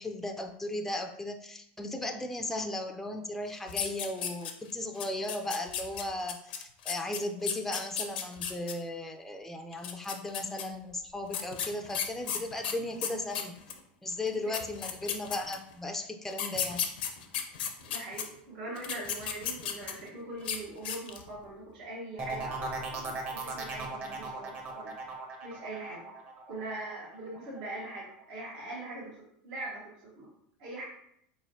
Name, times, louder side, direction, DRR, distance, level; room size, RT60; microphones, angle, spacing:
voice 1, 0.0-13.5 14.0-16.8, left 1 dB, 5° left, 5 dB, 0.3 m, -36 dB
sound 1, 3.7-4.7 5.0-8.7 9.7-10.6 11.3-13.8 14.3-14.4 14.5-15.7 16.3-18.2 18.8-20.1 20.4-20.6 20.8-21.3, left 8 dB, 80° left, 0.5 m, -34 dB
voice 2, 17.8-26.0 26.5-29.1 29.4-30.3 30.6-30.8, right 2 dB, 70° right, -5 dB, 1.1 m, -42 dB
sound 2, 22.2-27.8 28.2-28.7, right 4 dB, 35° right, 0.9 m, -38 dB
4.0 x 3.1 x 2.6 m, 0.71 s
hypercardioid pair, 100°, 5 cm